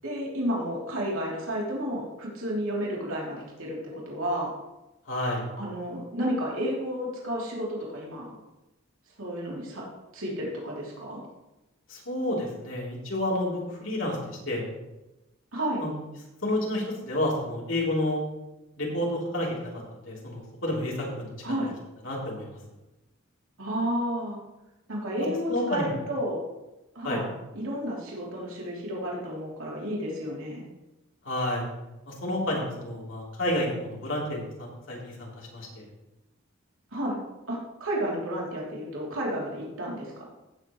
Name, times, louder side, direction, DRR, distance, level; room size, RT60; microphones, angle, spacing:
voice 1, 0.0-4.5 5.6-8.3 9.2-9.8 10.1-11.2 15.5-15.8 21.4-21.7 23.6-24.4 24.9-26.4 26.9-30.7 36.9-37.2 37.5-40.2, equal, 90° right, -4 dB, 3.0 m, -31 dB
voice 2, 5.0-5.5 11.9-14.7 15.8-15.9 16.4-18.2 18.8-19.7 20.0-21.6 22.0-22.6 25.5-26.0 27.0-27.2 31.2-31.6 32.1-35.8, left 1 dB, 70° left, -4 dB, 3.4 m, -30 dB
16.0 x 7.9 x 3.1 m, 0.99 s
head